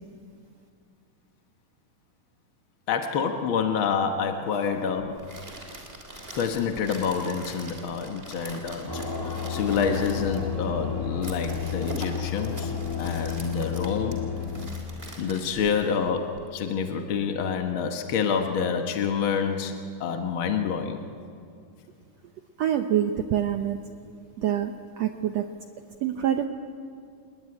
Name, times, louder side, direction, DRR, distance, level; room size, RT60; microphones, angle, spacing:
voice 1, 2.9-5.3 6.3-14.3 15.2-21.0, left 6 dB, 60° left, 4 dB, 1.3 m, -28 dB
sound 1, 5.0-16.4, right 1 dB, 15° right, 3.3 m, -43 dB
sound 2, 8.9-14.7, left 7 dB, 20° left, 0.6 m, -31 dB
voice 2, 22.6-23.8 24.4-25.5 26.0-26.5, right 10 dB, 80° right, 6 dB, 1.5 m, -26 dB
28.0 x 20.5 x 9.8 m, 2.4 s
omnidirectional pair, 4.1 m